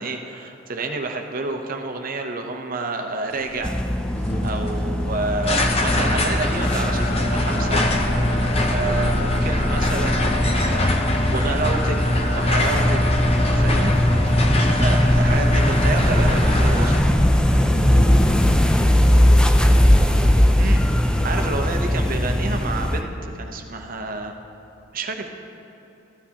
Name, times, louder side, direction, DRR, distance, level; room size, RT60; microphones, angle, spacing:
voice 1, 0.0-3.7 4.4-7.8 8.7-10.9 11.3-12.0 12.3-13.0 13.5-13.9 14.7-17.0 20.6-24.3 24.9-25.3, right 3 dB, 45° right, 4 dB, 0.7 m, -29 dB
sound 1, 3.4-17.0, left 1 dB, 30° left, 0.7 m, -22 dB
sound 2, 3.6-23.0, left 1 dB, 5° left, 0.4 m, -20 dB
voice 2, 4.1-4.5 7.5-7.9 8.2-8.5 12.5-12.9 13.4-13.9 14.3-14.8 17.5-19.4 19.9-21.7, left 1 dB, 60° left, -6 dB, 2.9 m, -34 dB
14.5 x 12.0 x 2.9 m, 2.9 s
head